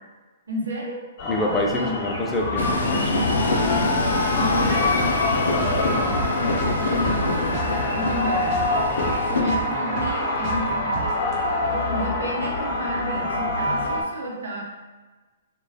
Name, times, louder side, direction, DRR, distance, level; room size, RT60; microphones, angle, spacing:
voice 1, 0.5-1.0 1.7-2.3 4.4-8.8 9.2-11.2 11.7-14.7, equal, 85° right, -3 dB, 0.7 m, -31 dB
sound 1, 1.2-14.0, left 2 dB, 40° left, 0.7 m, -25 dB
voice 2, 1.3-3.4, left 1 dB, 10° left, 0 dB, 0.3 m, -27 dB
Train, 2.6-9.4, left 2 dB, 85° left, 0.4 m, -26 dB
sound 2, 5.5-8.2 8.4-11.4, right 6 dB, 40° right, 0.5 m, -35 dB
2.3 x 2.1 x 2.6 m, 1.2 s
hypercardioid pair, 145°, 0 cm